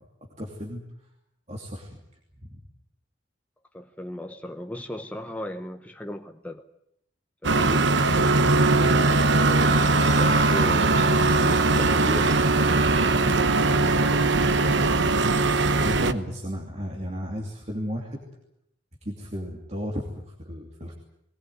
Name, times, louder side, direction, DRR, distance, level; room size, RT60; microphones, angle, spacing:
voice 1, 0.4-0.8 1.5-1.9 2.4-2.6 15.8-18.2 19.0-20.9, equal, 35° right, 0 dB, 2.8 m, -34 dB
voice 2, 3.7-6.6 7.4-7.9 8.7-9.9 10.2-12.4 12.9-15.2, left 1 dB, 5° left, 5 dB, 0.8 m, -36 dB
sound 1, 7.4-16.1, right 3 dB, 65° right, 1.0 m, -20 dB
21.0 x 18.5 x 9.5 m, 0.75 s
head